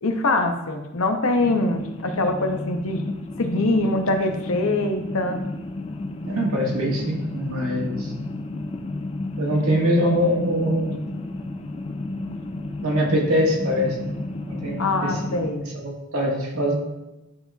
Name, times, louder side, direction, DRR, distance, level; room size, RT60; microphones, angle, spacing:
voice 1, 0.0-3.0 3.4-5.4 14.8-15.7, left 2 dB, 75° left, 5 dB, 0.7 m, -23 dB
sound 1, 1.4-15.5, left 2 dB, 25° left, 0.4 m, -32 dB
voice 2, 6.3-8.1 9.4-11.0 12.8-14.0 14.5-15.5 15.7-16.7, equal, 90° right, -2 dB, 1.6 m, -23 dB
10.5 x 3.9 x 2.3 m, 0.98 s
head